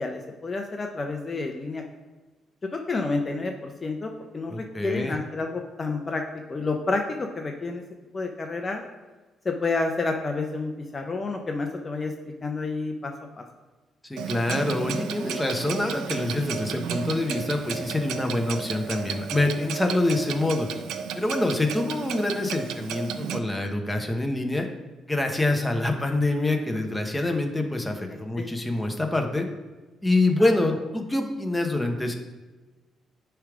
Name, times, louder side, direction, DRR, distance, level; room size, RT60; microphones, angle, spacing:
voice 1, 0.0-1.8 2.7-6.2 6.5-7.8 8.1-8.8 9.4-12.1 12.4-13.4 28.1-28.5 30.4-30.5, left 3 dB, 30° left, 3 dB, 0.7 m, -30 dB
voice 2, 4.5-5.1 14.1-20.7 21.1-24.7 25.1-29.5 30.0-32.1, left 2 dB, 10° left, 3 dB, 1.0 m, -26 dB
Clock, 14.2-23.4, right 7 dB, 90° right, 0.5 m, -33 dB
10.0 x 3.5 x 4.9 m, 1.2 s
cardioid pair, 90°, 0 cm